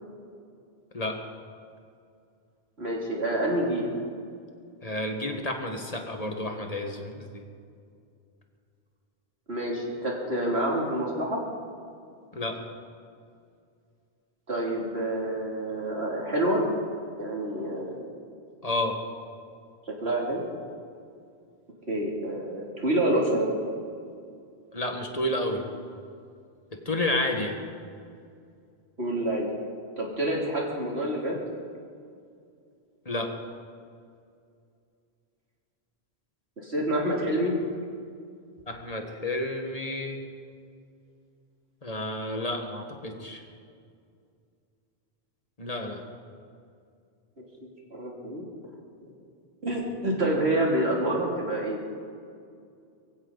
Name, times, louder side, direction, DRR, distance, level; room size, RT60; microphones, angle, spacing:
voice 1, 2.8-3.9 9.5-11.4 14.5-16.6 17.2-18.0 19.9-20.4 21.9-23.5 29.0-29.5 30.0-31.4 36.6-37.6 47.4-47.5 47.9-48.5 49.0-49.1 49.6-51.8, right 1 dB, 90° right, -2 dB, 3.3 m, -27 dB
voice 2, 4.8-7.4 12.3-12.6 18.6-19.0 24.7-25.7 26.8-27.6 33.0-33.3 38.7-40.2 41.8-43.4 45.6-46.0, left 1 dB, 35° left, 3 dB, 1.7 m, -30 dB
23.0 x 15.5 x 4.1 m, 2.4 s
omnidirectional pair, 1.1 m